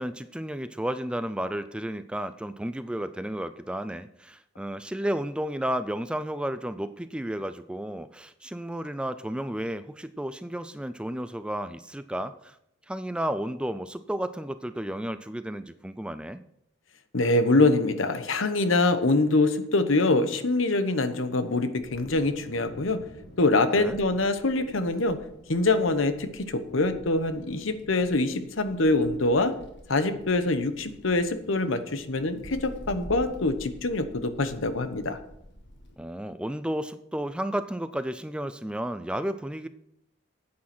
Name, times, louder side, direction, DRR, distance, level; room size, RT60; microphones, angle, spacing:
voice 1, 0.0-12.6 12.9-16.4 23.8-24.0 36.0-39.7, right 1 dB, 5° right, 12 dB, 0.3 m, -32 dB
voice 2, 17.1-23.0 23.4-25.2 25.5-29.5 29.9-35.2, left 2 dB, 70° left, 10 dB, 1.0 m, -24 dB
Wind, 21.8-35.9, equal, 55° left, 1.9 m, -48 dB
9.6 x 8.6 x 6.1 m, 0.76 s
head